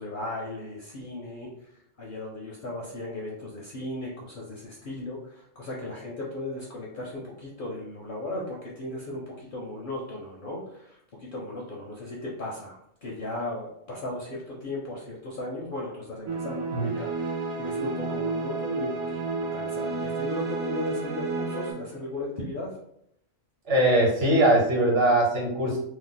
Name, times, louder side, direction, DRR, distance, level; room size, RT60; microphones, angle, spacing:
voice 1, 0.0-22.8, left 2 dB, 60° left, -3 dB, 0.6 m, -36 dB
sound 1, 16.3-21.7, right 4 dB, 85° right, 1.1 m, -31 dB
voice 2, 23.7-25.8, right 1 dB, 55° right, -2 dB, 1.2 m, -21 dB
2.7 x 2.1 x 3.7 m, 0.75 s
omnidirectional pair, 1.3 m